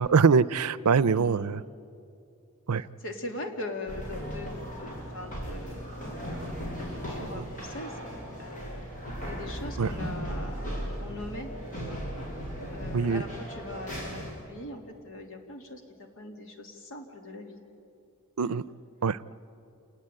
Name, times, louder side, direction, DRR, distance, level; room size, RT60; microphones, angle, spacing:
voice 1, 0.0-1.6 2.7-2.8 9.8-9.9 12.9-13.2 18.4-18.6 19.0-19.2, right 5 dB, 90° right, 18 dB, 0.6 m, -23 dB
voice 2, 1.0-1.5 2.8-6.3 6.8-8.1 8.4-8.8 9.3-10.7 11.0-12.0 12.7-17.6 18.5-18.6, left 2 dB, 65° left, 3 dB, 2.9 m, -41 dB
sound 1, 3.9-14.3, equal, 40° left, 7.5 m, -37 dB
28.5 x 19.5 x 9.0 m, 2.6 s
head